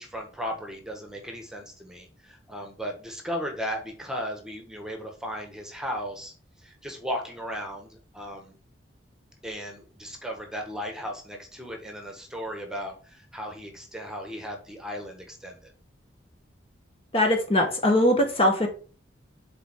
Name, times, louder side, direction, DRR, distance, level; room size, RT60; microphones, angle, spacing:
voice 1, 0.0-8.6 9.4-15.7, equal, 5° right, 2 dB, 1.4 m, -36 dB
voice 2, 17.1-18.7, left 1 dB, 30° left, 3 dB, 1.2 m, -21 dB
6.9 x 4.3 x 3.7 m, 0.38 s
head